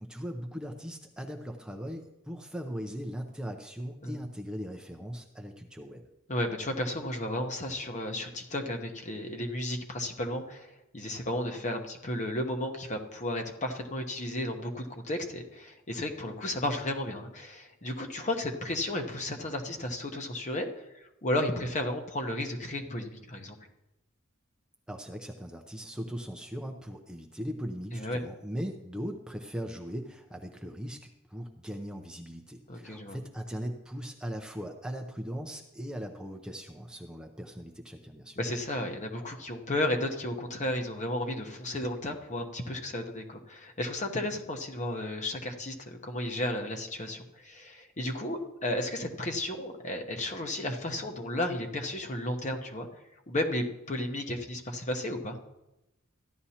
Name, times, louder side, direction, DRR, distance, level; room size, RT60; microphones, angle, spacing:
voice 1, 0.0-6.0 24.9-38.4, equal, 5° right, 3 dB, 0.6 m, -39 dB
voice 2, 6.3-23.6 27.9-28.2 32.7-33.2 38.4-52.9 53.3-55.4, left 1 dB, 35° left, 4 dB, 1.0 m, -33 dB
14.5 x 11.0 x 2.9 m, 0.94 s
head